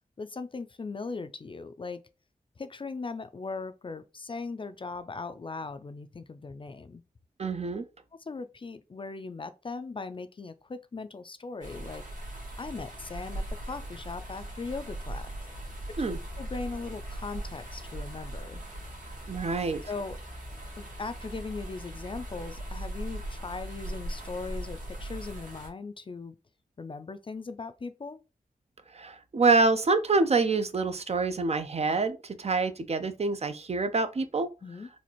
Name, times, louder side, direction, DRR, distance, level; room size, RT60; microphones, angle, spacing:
voice 1, 0.2-2.0 2.6-7.0 8.2-12.0 12.6-15.3 16.4-18.6 19.9-20.2 20.8-26.4 26.8-28.2 34.6-34.9, left 4 dB, 35° left, 0.4 m, -39 dB
voice 2, 7.4-7.8 16.0-16.2 19.3-19.8 28.9-34.5, right 3 dB, 45° right, 0.5 m, -26 dB
sound 1, 11.6-25.7, right 1 dB, 65° right, 1.5 m, -39 dB
4.1 x 2.4 x 3.0 m
wide cardioid pair, 80°, 15 cm